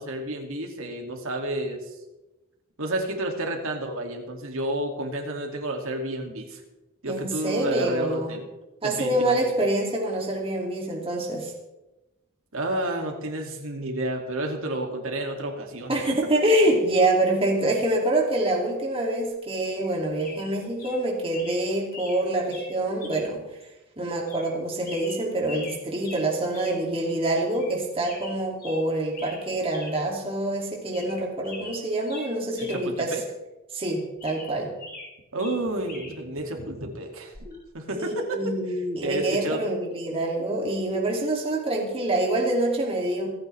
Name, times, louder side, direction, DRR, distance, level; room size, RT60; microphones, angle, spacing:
voice 1, 0.0-2.0 2.8-6.6 7.0-8.5 8.8-9.4 12.5-15.9 32.6-33.2 35.3-37.3 37.7-38.4 39.0-39.6, right 1 dB, 65° right, 2 dB, 2.5 m, -30 dB
voice 2, 7.1-8.3 8.8-11.5 15.9-23.4 24.0-33.1 33.7-34.7 37.9-43.3, right 1 dB, 25° right, -1 dB, 2.7 m, -26 dB
sound 1, 19.8-19.9 20.2-20.5 20.8-21.0 21.3-21.6 21.9-22.2 22.5-22.7 23.0-23.3 23.6-23.7 24.3-24.5 24.8-25.8 26.0-26.2 26.5-26.8 27.1-27.2 27.5-27.7 28.0-28.8 29.1-29.4 29.7-29.9 30.3-30.4 30.8-31.2 31.4-32.8 33.1-33.2 33.8-35.1 35.4-36.1 37.3-37.6, left 2 dB, 45° left, 5.3 m, -42 dB
27.0 x 9.5 x 3.4 m, 1.0 s
head